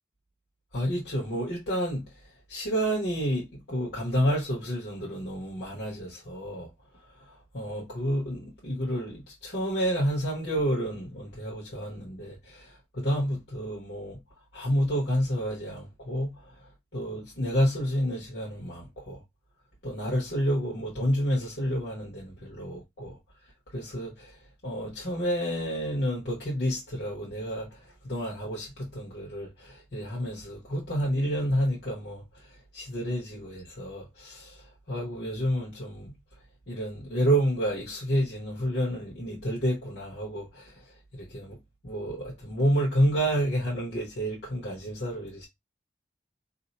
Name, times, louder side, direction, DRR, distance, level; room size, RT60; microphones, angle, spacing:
voice 1, 0.7-14.2 14.5-19.2 19.8-36.2 36.7-41.6 41.8-45.5, equal, 65° left, 1.1 m, -30 dB
2.7 x 2.2 x 4.1 m
head